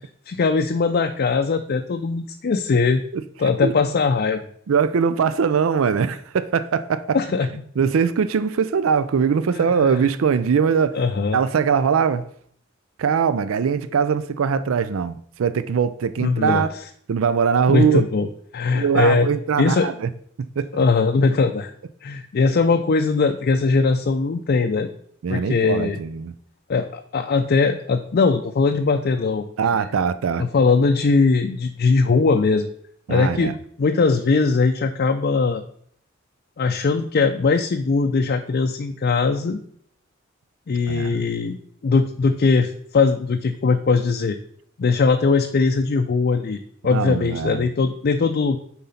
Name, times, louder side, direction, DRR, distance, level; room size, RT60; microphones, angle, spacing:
voice 1, 0.3-3.0 3.4-4.4 7.1-7.5 9.5-10.1 10.9-11.4 16.2-16.7 17.7-18.3 18.5-19.3 19.6-19.9 20.7-21.7 22.0-24.9 25.3-26.0 26.7-29.4 30.4-32.7 33.1-35.6 36.6-39.6 40.7-41.6 41.8-44.4 44.8-48.6, left 4 dB, 50° left, 5 dB, 0.4 m, -20 dB
voice 2, 4.7-7.2 7.8-11.0 11.3-12.2 13.0-16.7 17.1-18.0 18.7-20.1 20.6-20.7 25.2-26.3 29.6-30.4 33.1-33.6 40.9-41.2 46.9-47.7, right 6 dB, 90° right, 14 dB, 0.4 m, -21 dB
7.5 x 4.2 x 5.6 m, 0.64 s
head